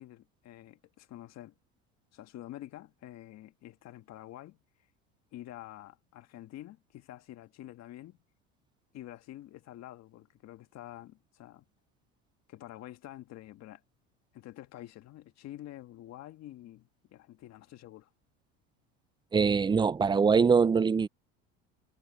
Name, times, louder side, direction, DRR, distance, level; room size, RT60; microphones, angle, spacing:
voice 1, 0.0-1.5 2.1-4.6 5.3-8.2 8.9-11.6 12.5-13.8 14.3-18.1, left 14 dB, 55° left, 1.8 m, -48 dB
voice 2, 19.3-21.1, right 5 dB, 15° right, 0.4 m, -23 dB
supercardioid pair, 105°, 32 cm